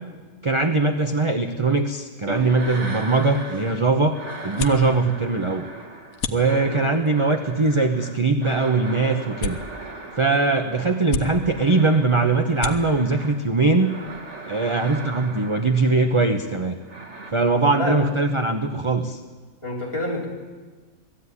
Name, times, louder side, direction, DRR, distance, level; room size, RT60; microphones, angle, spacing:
voice 1, 0.4-5.7 6.3-9.6 10.2-14.0 14.5-16.8 17.3-19.2, right 3 dB, 25° right, 5 dB, 0.9 m, -21 dB
sound 1, 2.3-3.9 4.1-13.4 13.8-16.1 16.8-17.3, right 2 dB, 55° right, 2.2 m, -38 dB
sound 2, 3.1-14.7, left 4 dB, 85° left, 1.5 m, -37 dB
voice 2, 6.4-6.8 17.7-18.0 19.6-20.3, left 1 dB, 20° left, -3 dB, 4.0 m, -28 dB
19.5 x 14.0 x 9.7 m, 1.4 s
omnidirectional pair, 1.5 m